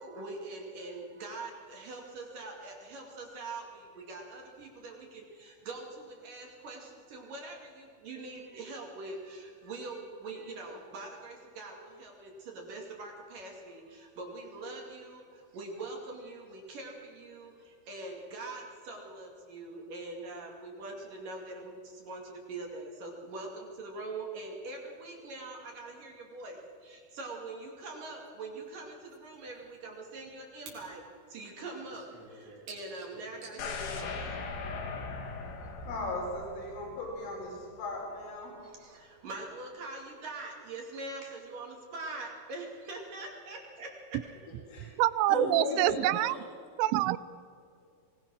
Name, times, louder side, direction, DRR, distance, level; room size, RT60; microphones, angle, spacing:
voice 1, 0.0-31.0 31.3-34.2 38.6-44.2, right 2 dB, 50° right, 3.7 m, -43 dB
sound 1, 28.2-28.3 28.7-28.8 29.1-29.2 29.5-30.8 31.1-31.2 31.6-33.6, right 3 dB, 65° right, 6.4 m, -50 dB
sound 2, 33.6-37.6 37.9-38.0, left 4 dB, 65° left, 4.2 m, -39 dB
voice 2, 35.9-38.5 44.7-44.9 45.3-46.4, left 2 dB, 80° left, 6.9 m, -36 dB
voice 3, 45.0-46.4 46.8-47.2, right 15 dB, 85° right, 3.1 m, -26 dB
24.5 x 19.0 x 6.4 m
omnidirectional pair, 5.5 m